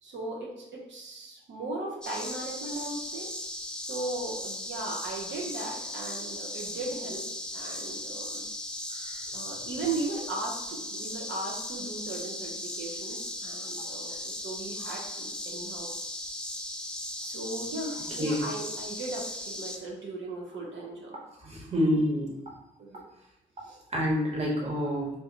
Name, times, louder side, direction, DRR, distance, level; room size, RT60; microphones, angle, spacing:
voice 1, 0.0-3.3 3.8-7.3 7.5-8.4 9.3-15.9 17.2-21.2 22.8-23.0 23.6-23.8, right 2 dB, 60° right, -2 dB, 1.0 m, -37 dB
sound 1, 2.0-19.8, left 1 dB, 5° left, 0.5 m, -37 dB
voice 2, 21.4-22.3 23.9-25.1, equal, 30° right, -3 dB, 1.5 m, -27 dB
3.8 x 2.7 x 2.9 m, 0.91 s
hypercardioid pair, 40°, 21 cm